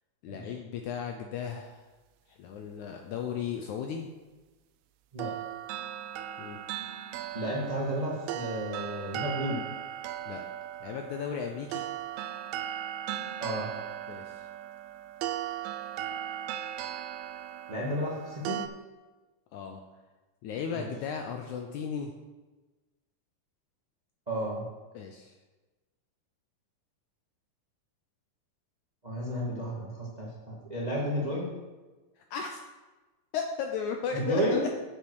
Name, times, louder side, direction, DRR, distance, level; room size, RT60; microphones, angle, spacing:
voice 1, 0.2-1.9 2.3-4.1 6.4-6.6 10.3-10.4 10.8-11.9 14.1-14.4 19.5-19.8 20.4-22.1 24.9-25.3 32.2-32.6 33.3-34.7, left 6 dB, 80° left, 4 dB, 1.7 m, -35 dB
sound 1, 5.2-18.7, right 11 dB, 85° right, 2.3 m, -37 dB
voice 2, 7.3-9.6 13.4-13.7 17.7-18.6 20.7-20.9 24.3-24.7 29.0-31.5 34.1-34.6, equal, 50° right, -4 dB, 0.5 m, -32 dB
8.9 x 7.4 x 4.7 m, 1.2 s
omnidirectional pair, 4.0 m